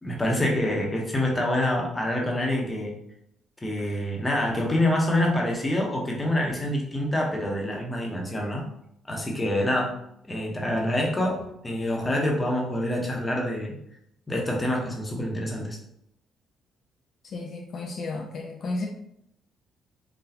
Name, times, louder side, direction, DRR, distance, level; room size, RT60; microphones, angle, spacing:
voice 1, 0.0-2.9 3.6-8.6 9.1-9.9 10.3-13.7 14.3-15.8, left 1 dB, 20° left, -1 dB, 0.9 m, -26 dB
voice 2, 17.2-18.9, left 2 dB, 60° left, 1 dB, 0.5 m, -33 dB
4.0 x 2.2 x 2.8 m, 0.75 s
cardioid pair, 90°, 0 cm